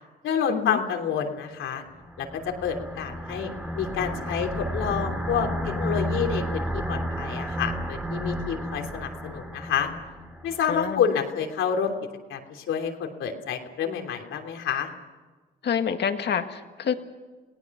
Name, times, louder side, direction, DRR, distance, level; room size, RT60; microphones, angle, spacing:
voice 1, 0.2-1.8 2.2-3.5 3.7-9.9 10.4-11.9 12.3-14.9, left 7 dB, 80° left, 4 dB, 3.1 m, -28 dB
sound 1, 2.0-10.6, equal, 5° right, 2.3 m, -32 dB
voice 2, 10.7-11.0 15.6-17.0, left 7 dB, 60° left, 7 dB, 1.9 m, -27 dB
29.5 x 18.5 x 6.0 m, 1.3 s
cardioid pair, 90°, 20 cm